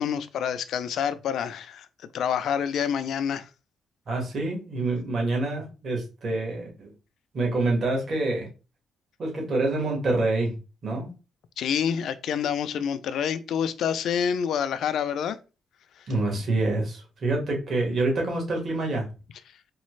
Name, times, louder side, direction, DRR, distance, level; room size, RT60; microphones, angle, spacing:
voice 1, 0.0-1.9 2.1-3.5 11.6-15.4, left 8 dB, 70° left, 0.4 m, -27 dB
voice 2, 4.1-6.9 7.3-8.5 9.2-10.5 10.8-11.1 16.1-19.1, right 2 dB, 50° right, 1.7 m, -26 dB
4.1 x 2.3 x 3.1 m
cardioid pair, 90°, 0 cm